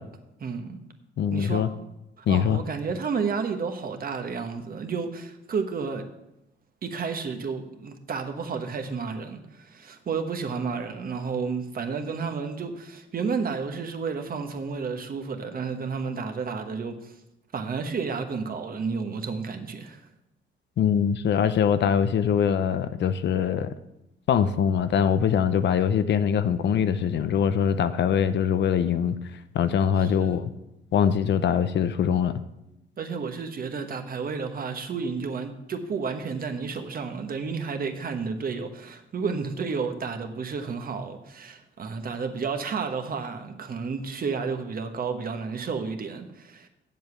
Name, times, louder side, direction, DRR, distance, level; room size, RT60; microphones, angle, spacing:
voice 1, 0.4-0.8 1.3-1.7 2.2-6.1 6.8-17.2 17.5-20.0 30.0-30.4 33.0-46.7, right 5 dB, 45° right, 1.2 m, -31 dB
voice 2, 1.2-1.7 2.3-2.6 20.8-23.7 24.3-29.2 29.5-30.5 30.9-32.3, left 8 dB, 65° left, 0.7 m, -23 dB
7.9 x 7.4 x 7.1 m
cardioid pair, 90°, 20 cm